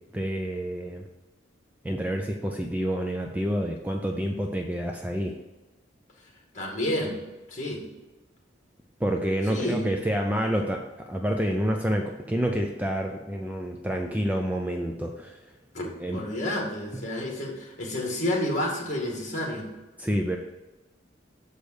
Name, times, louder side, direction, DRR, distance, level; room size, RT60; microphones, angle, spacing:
voice 1, 0.1-1.1 1.8-5.4 9.0-10.8 11.1-15.4 16.0-16.2 20.0-20.4, equal, 10° right, 2 dB, 0.4 m, -28 dB
voice 2, 6.5-7.2 7.5-7.8 9.4-9.8 15.7-19.7, left 1 dB, 40° left, -1 dB, 2.1 m, -30 dB
6.6 x 5.1 x 6.3 m, 1.1 s
head